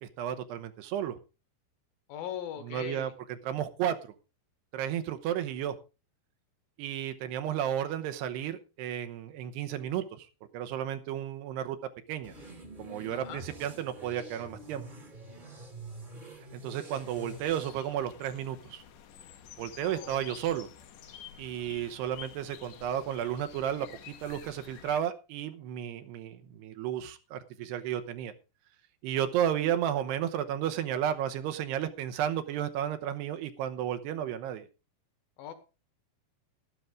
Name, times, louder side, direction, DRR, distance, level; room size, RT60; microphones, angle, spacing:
voice 1, 0.0-1.2 2.6-4.1 4.7-5.8 6.8-10.3 10.5-11.8 12.1-12.3 12.8-14.8 16.5-18.8 19.6-20.7 21.4-28.3 29.0-34.7, right 10 dB, 80° right, 8 dB, 3.0 m, -33 dB
voice 2, 2.1-3.1 13.1-13.4 19.8-20.2 35.4-35.5, left 10 dB, 65° left, 9 dB, 2.7 m, -40 dB
sound 1, 12.2-17.7, right 1 dB, 25° right, 1.0 m, -46 dB
sound 2, 16.9-25.0, left 9 dB, 80° left, 3.5 m, -50 dB
12.5 x 12.0 x 3.7 m, 0.31 s
omnidirectional pair, 4.9 m